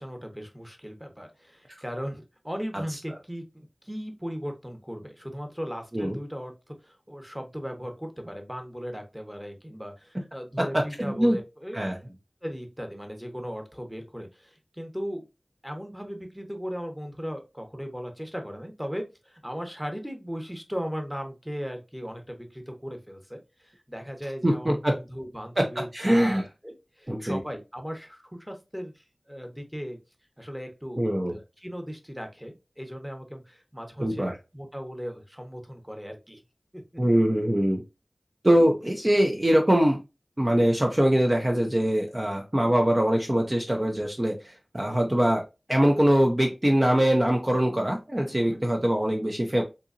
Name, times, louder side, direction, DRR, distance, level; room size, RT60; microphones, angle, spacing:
voice 1, 0.0-12.0 12.4-15.2 15.6-30.0 30.4-31.0 31.3-36.4 36.7-36.8 48.4-48.6, equal, 5° right, 4 dB, 1.0 m, -37 dB
voice 2, 10.6-11.4 11.7-12.0 24.4-25.0 25.6-25.7 25.9-26.4 27.1-27.4 31.0-31.4 34.0-34.3 37.0-37.8 38.4-40.0 40.4-45.4 45.7-49.6, equal, 30° right, 2 dB, 0.6 m, -23 dB
3.8 x 2.8 x 2.5 m, 0.26 s
wide cardioid pair, 40°, 0 cm